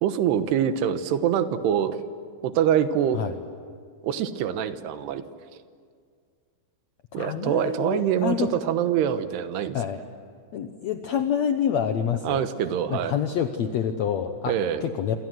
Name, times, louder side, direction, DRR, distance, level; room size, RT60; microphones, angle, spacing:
voice 1, 0.0-2.0 2.4-3.2 4.0-5.2 7.1-9.8 12.2-13.2 14.5-14.9, right 9 dB, 90° right, 10 dB, 3.2 m, -24 dB
voice 2, 7.1-8.5 9.7-10.0 10.5-12.4 12.9-14.5 14.8-15.2, left 8 dB, 90° left, 7 dB, 1.5 m, -27 dB
27.5 x 27.0 x 7.8 m, 2.1 s
omnidirectional pair, 4.6 m